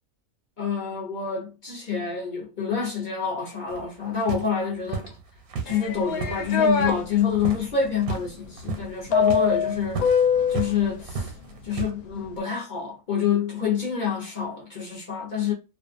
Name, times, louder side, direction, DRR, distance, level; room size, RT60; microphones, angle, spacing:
voice 1, 0.6-5.2 5.6-11.3 11.6-15.5, left 6 dB, 45° left, 0.6 m, -27 dB
sound 1, 3.7-7.0 7.3-7.7 7.9-8.3 8.6-10.8 11.0-11.9, right 4 dB, 85° right, 1.1 m, -34 dB
sound 2, 5.7-6.9 9.1-10.7, left 6 dB, 80° left, 1.0 m, -22 dB
2.5 x 2.3 x 2.4 m
omnidirectional pair, 1.5 m